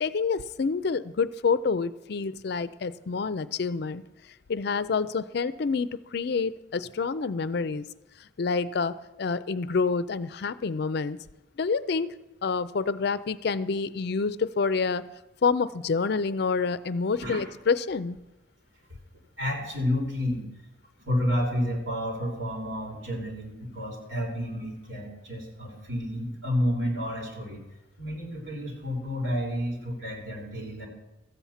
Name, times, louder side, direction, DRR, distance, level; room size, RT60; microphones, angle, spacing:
voice 1, 0.0-4.0 4.5-7.8 8.4-11.2 11.6-12.1 12.4-15.0 15.4-18.2, left 4 dB, 55° left, 14 dB, 0.4 m, -27 dB
voice 2, 19.4-20.4 21.0-27.6 28.0-30.9, equal, 80° right, 0 dB, 3.3 m, -30 dB
13.5 x 8.4 x 5.7 m, 0.97 s
head